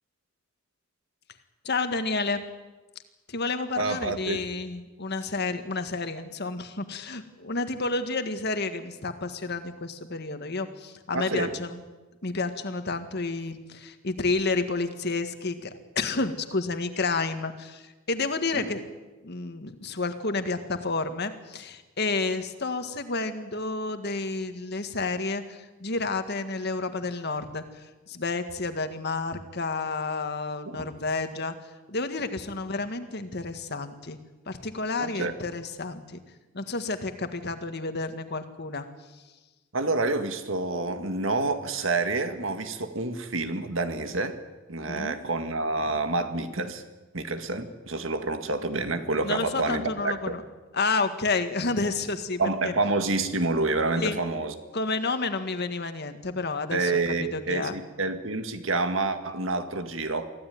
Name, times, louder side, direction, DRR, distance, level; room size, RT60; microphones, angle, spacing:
voice 1, 1.6-2.4 3.3-11.8 12.2-18.8 19.2-27.6 28.1-31.5 31.9-34.2 34.5-36.2 36.5-38.9 44.9-45.2 49.2-50.4 50.7-52.7 54.0-54.2 54.7-57.7, left 3 dB, 55° left, 8 dB, 1.8 m, -30 dB
voice 2, 3.8-4.4 11.1-11.5 18.5-18.7 30.7-30.8 35.0-35.4 39.7-44.4 44.7-46.8 47.1-50.3 52.4-54.5 56.7-60.3, right 3 dB, 75° right, 8 dB, 2.0 m, -28 dB
24.5 x 15.5 x 9.4 m, 1.2 s
head